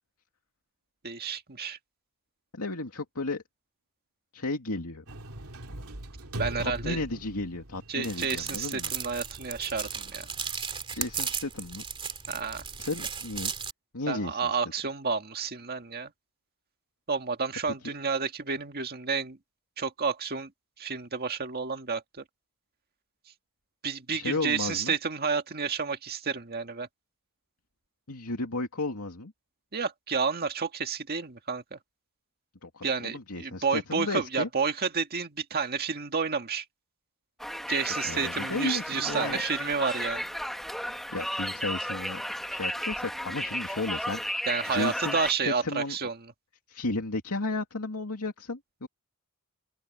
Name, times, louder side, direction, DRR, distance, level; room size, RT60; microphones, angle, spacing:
voice 1, 1.0-1.8 6.4-7.0 7.9-10.3 12.3-12.6 14.1-16.1 17.1-19.4 19.8-20.5 20.8-22.2 23.8-26.9 29.7-31.8 32.8-36.7 37.7-40.3 44.5-46.1, right 5 dB, 45° right, 1.8 m, -30 dB
voice 2, 2.5-3.4 4.3-5.0 6.6-8.9 10.9-11.9 12.8-13.5 13.9-14.5 17.8-17.9 24.1-24.9 28.1-29.3 32.6-34.5 38.0-39.4 41.1-42.2 42.5-46.0 46.7-48.9, left 2 dB, 85° left, 2.5 m, -34 dB
sound 1, 5.1-10.5, right 1 dB, 85° right, 2.5 m, -42 dB
sound 2, 8.0-13.7, right 6 dB, 25° right, 2.6 m, -36 dB
Conversation, 37.4-45.3, equal, ahead, 1.7 m, -34 dB
head